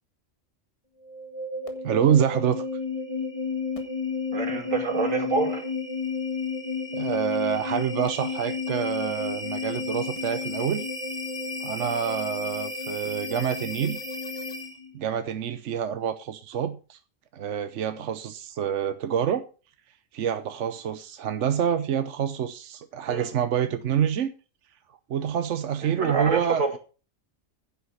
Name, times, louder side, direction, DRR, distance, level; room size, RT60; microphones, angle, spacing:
sound 1, 1.0-14.9, left 4 dB, 25° left, 1.8 m, -32 dB
voice 1, 1.8-2.6 6.9-10.8 11.6-14.0 14.9-17.0 17.3-19.4 20.1-24.3 25.1-26.8, right 8 dB, 70° right, 1.1 m, -27 dB
voice 2, 4.3-5.6 23.1-23.3 25.8-26.7, right 4 dB, 90° right, 2.9 m, -27 dB
10.0 x 8.0 x 6.4 m
omnidirectional pair, 1.3 m